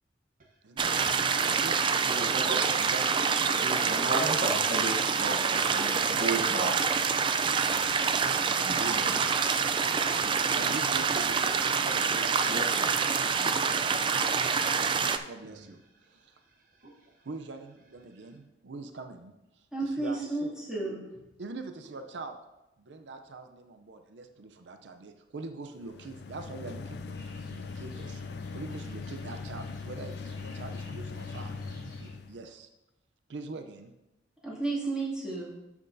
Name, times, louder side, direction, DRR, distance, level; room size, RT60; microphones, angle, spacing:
voice 1, 0.6-2.4 2.7-4.1 7.9-9.3 10.1-12.4 15.2-15.8 16.1-16.3 17.2-20.5 21.4-22.4 22.8-27.2 27.4-32.7 33.3-33.9, right 3 dB, 90° right, 6 dB, 0.6 m, -43 dB
sound 1, 0.8-15.2, right 5 dB, 30° right, 0.3 m, -26 dB
voice 2, 2.0-2.7 3.4-6.8 8.9-9.1 12.5-13.6 15.4-15.5, right 2 dB, 50° right, 1 dB, 0.9 m, -34 dB
voice 3, 19.7-21.0 34.4-35.5, right 2 dB, 5° right, -8 dB, 2.3 m, -32 dB
sound 2, 25.8-32.4, left 4 dB, 65° left, 0.5 m, -40 dB
sound 3, 27.1-32.1, equal, 25° left, 2.6 m, -51 dB
12.0 x 6.0 x 2.7 m, 0.97 s
head